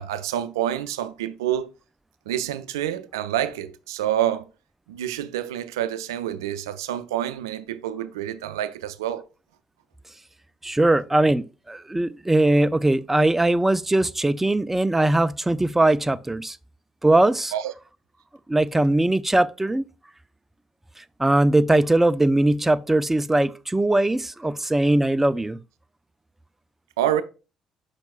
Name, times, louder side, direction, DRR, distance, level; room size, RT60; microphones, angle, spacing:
voice 1, 0.0-1.7 2.3-4.5 4.9-9.3 17.5-17.7 27.0-27.2, right 11 dB, 85° right, 0.4 m, -27 dB
voice 2, 10.6-16.6 17.0-17.5 18.5-19.8 21.0-25.6, right 2 dB, 10° right, 0.4 m, -20 dB
6.6 x 6.1 x 2.3 m
hypercardioid pair, 50°, 2 cm